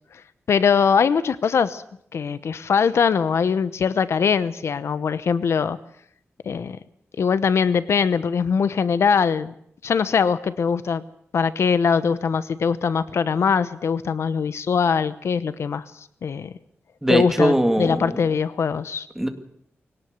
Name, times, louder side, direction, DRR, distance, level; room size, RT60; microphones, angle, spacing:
voice 1, 0.5-1.8 2.1-5.8 6.4-6.8 7.2-9.5 9.8-11.0 11.3-16.5 17.1-19.1, left 6 dB, 70° left, 14 dB, 0.9 m, -22 dB
voice 2, 17.0-18.2 19.2-19.3, right 1 dB, 5° right, 7 dB, 2.0 m, -20 dB
22.0 x 18.0 x 8.1 m, 0.68 s
wide cardioid pair, 170°, 5 cm